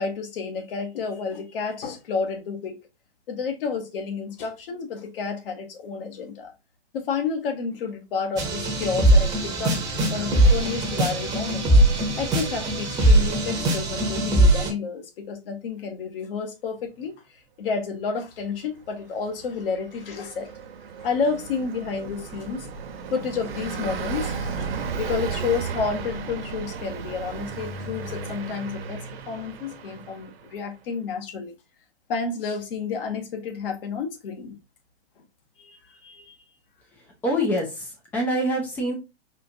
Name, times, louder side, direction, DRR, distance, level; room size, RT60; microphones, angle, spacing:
voice 1, 0.0-2.8 3.3-6.5 6.9-9.8 10.1-11.7 12.2-17.1 17.6-20.5 21.0-22.7 23.1-24.7 24.9-31.5 32.1-34.6 35.6-36.3, left 5 dB, 55° left, 1.1 m, -30 dB
sound 1, 8.4-14.7, right 1 dB, 10° right, 0.8 m, -20 dB
Car passing by, 19.4-30.4, right 5 dB, 55° right, 0.9 m, -34 dB
voice 2, 37.2-38.9, equal, 5° left, 0.3 m, -25 dB
4.3 x 2.4 x 2.7 m
hypercardioid pair, 135°, 34 cm